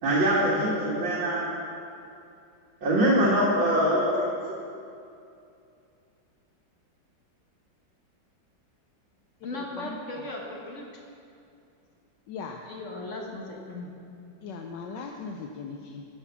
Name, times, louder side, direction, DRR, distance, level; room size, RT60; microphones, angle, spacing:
voice 1, 0.0-1.4 2.8-4.1, right 1 dB, 90° right, 2.6 m, -23 dB
voice 2, 9.4-10.9 12.7-13.9, left 2 dB, 45° left, 1.5 m, -37 dB
voice 3, 12.3-12.6 14.4-16.0, left 5 dB, 75° left, 1.2 m, -38 dB
14.0 x 6.6 x 5.8 m
omnidirectional pair, 2.1 m